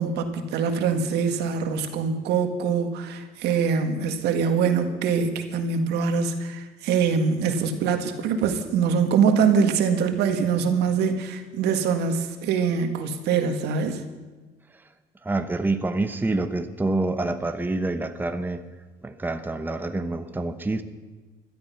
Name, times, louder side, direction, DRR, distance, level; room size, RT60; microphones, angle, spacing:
voice 1, 0.0-14.0, right 6 dB, 85° right, 6 dB, 1.8 m, -24 dB
voice 2, 15.2-18.6 19.0-20.8, right 2 dB, 10° right, 8 dB, 0.9 m, -27 dB
17.0 x 12.5 x 5.7 m, 1.3 s
cardioid pair, 110°, 17 cm